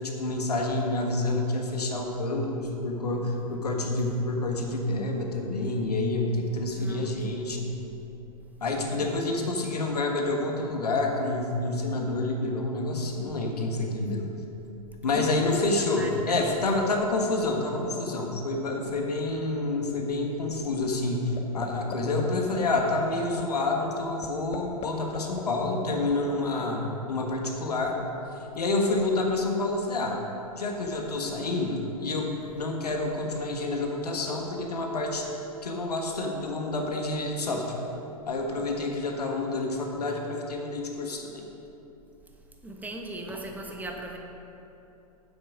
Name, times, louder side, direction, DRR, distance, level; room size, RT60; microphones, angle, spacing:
voice 1, 0.0-7.7 8.6-14.3 15.0-27.9 28.5-30.2 30.6-35.2 35.6-37.7 38.3-41.4, left 2 dB, 80° left, 1 dB, 1.5 m, -28 dB
voice 2, 6.7-7.2 15.1-16.5 16.8-16.9 42.6-44.2, right 1 dB, 10° right, 1 dB, 1.1 m, -39 dB
sound 1, 21.4-21.7 21.9-22.2 22.5-22.8 23.2-23.4 23.8-23.9 24.2-24.9 25.1-26.1, left 9 dB, 30° left, 1.0 m, -37 dB
9.1 x 7.9 x 5.2 m, 3.0 s
hypercardioid pair, 105°, 20 cm